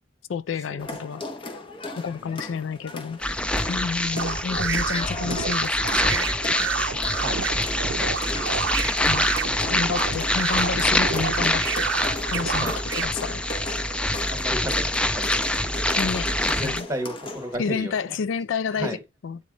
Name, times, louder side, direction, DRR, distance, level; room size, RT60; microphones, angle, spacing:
voice 1, 0.3-1.2 2.0-3.2 3.7-6.3 9.0-9.3 9.7-11.9 12.3-13.4 15.9-16.3 16.6-16.9 17.6-19.0 19.2-19.4, left 6 dB, 85° left, 0.4 m, -30 dB
sound 1, 0.8-17.6, left 2 dB, 25° left, 0.7 m, -37 dB
voice 2, 2.2-2.7 7.1-8.7 12.5-12.8 14.3-15.8 16.4-18.1 18.7-19.0, equal, 15° right, 1.2 m, -35 dB
sound 2, 3.2-16.8, left 1 dB, 5° left, 0.3 m, -25 dB
sound 3, 4.1-13.0, right 7 dB, 75° right, 0.5 m, -29 dB
8.5 x 3.1 x 4.0 m
head